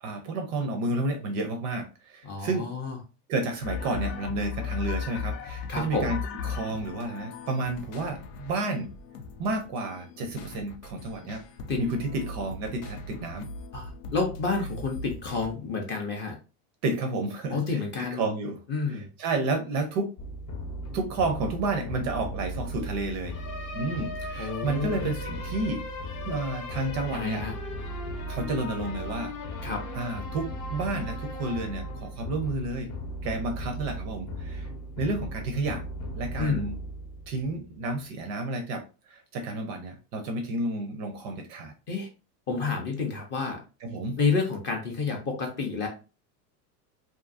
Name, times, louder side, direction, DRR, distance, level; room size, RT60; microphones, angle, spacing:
voice 1, 0.0-2.7 3.3-8.9 9.4-11.4 11.8-13.5 16.8-18.6 18.9-20.1 20.9-23.4 23.7-25.9 26.2-27.5 28.3-29.3 29.6-29.7 29.9-32.9 33.2-34.7 35.0-35.8 36.1-36.8 37.3-41.7 43.8-44.2, right 2 dB, 35° right, 5 dB, 0.4 m, -31 dB
voice 2, 2.2-3.0 5.7-6.1 11.7-11.8 13.7-16.4 17.5-18.2 18.7-19.1 24.4-25.1 27.1-27.5 29.6-29.8 36.4-36.6 41.9-42.1 42.5-43.6 44.2-45.9, left 4 dB, 25° left, 2 dB, 0.4 m, -29 dB
sound 1, 3.6-15.5, left 5 dB, 80° left, 0.7 m, -38 dB
sound 2, 20.2-37.8, equal, 45° left, 0.8 m, -36 dB
2.6 x 2.4 x 2.4 m, 0.32 s
supercardioid pair, 135°, 47 cm